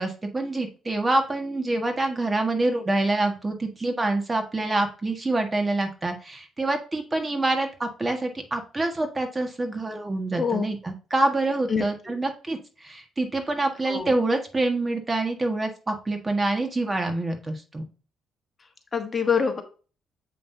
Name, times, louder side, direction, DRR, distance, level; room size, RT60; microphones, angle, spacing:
voice 1, 0.0-17.8, right 2 dB, 25° right, 5 dB, 1.5 m, -26 dB
voice 2, 11.7-12.2 13.9-14.1 18.9-19.6, left 6 dB, 35° left, 6 dB, 1.2 m, -25 dB
7.6 x 5.5 x 2.7 m, 0.36 s
cardioid pair, 90°, 0 cm